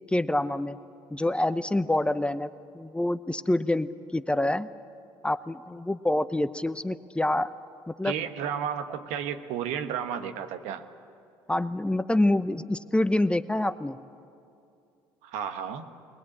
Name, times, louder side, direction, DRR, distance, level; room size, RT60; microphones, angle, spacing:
voice 1, 0.1-0.8 1.1-4.7 5.2-7.5 7.9-8.1 11.5-14.0, left 1 dB, 10° left, 13 dB, 0.7 m, -26 dB
voice 2, 8.0-10.8 15.2-15.9, right 8 dB, 75° right, 8 dB, 1.4 m, -32 dB
21.0 x 20.5 x 8.6 m, 2.5 s
hypercardioid pair, 65°, 12 cm